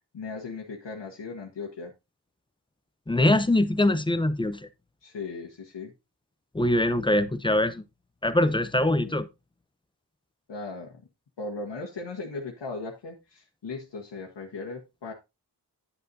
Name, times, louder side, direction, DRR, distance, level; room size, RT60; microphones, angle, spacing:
voice 1, 0.1-1.9 5.0-5.9 8.9-9.1 10.5-11.0 11.4-15.1, left 3 dB, 80° left, 1.5 m, -37 dB
voice 2, 3.1-4.7 6.5-7.8 8.2-9.3, left 1 dB, 10° left, 0.6 m, -23 dB
9.7 x 8.2 x 2.7 m
wide cardioid pair, 85°, 42 cm